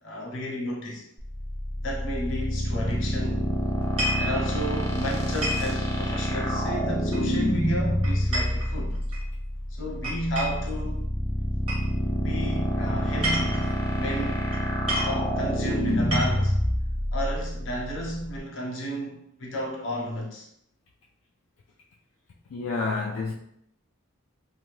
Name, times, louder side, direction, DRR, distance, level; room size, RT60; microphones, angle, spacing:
voice 1, 0.0-1.0 1.8-3.5 4.2-9.0 9.7-11.1 12.2-13.7 14.0-14.4 14.9-16.5 17.1-20.5, equal, 65° left, -2 dB, 0.7 m, -32 dB
sound 1, 1.2-18.4, equal, 15° left, 0.4 m, -27 dB
sound 2, 3.8-4.3 5.4-5.7 7.1-7.5 8.0-9.2 10.0-10.7 11.7-11.9 13.0-13.7 14.5-14.6 14.9-15.2 15.9-16.5, equal, 25° right, 0.8 m, -30 dB
voice 2, 22.5-23.3, left 3 dB, 80° left, -1 dB, 0.3 m, -29 dB
2.7 x 2.1 x 3.1 m, 0.73 s
head